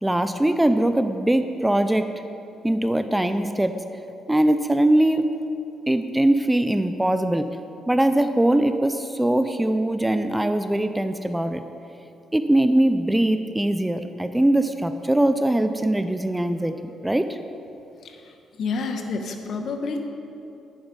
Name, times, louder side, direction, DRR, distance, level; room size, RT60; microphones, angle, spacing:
voice 1, 0.0-2.1 2.6-3.7 4.3-5.3 5.9-7.5 7.9-11.6 12.3-16.7 17.0-17.4, right 1 dB, 10° right, 9 dB, 0.5 m, -21 dB
voice 2, 18.0-20.1, left 4 dB, 60° left, 5 dB, 1.2 m, -29 dB
10.5 x 9.0 x 5.4 m, 2.8 s
cardioid pair, 90°, 0 cm